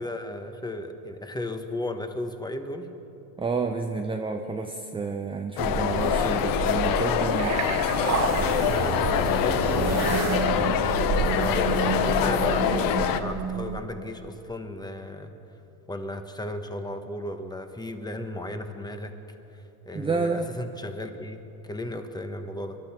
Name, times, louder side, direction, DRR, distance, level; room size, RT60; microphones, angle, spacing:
voice 1, 0.0-2.9 8.6-15.3 15.9-19.1 19.5-22.8, left 1 dB, 10° left, 7 dB, 1.2 m, -35 dB
voice 2, 3.4-7.6 19.9-20.5, right 4 dB, 10° right, 4 dB, 0.7 m, -29 dB
sound 1, 5.6-13.2, left 9 dB, 50° left, 1.0 m, -25 dB
sound 2, 5.6-13.8, right 5 dB, 35° right, 1.2 m, -29 dB
24.5 x 12.0 x 4.4 m, 3.0 s
hypercardioid pair, 95°, 45 cm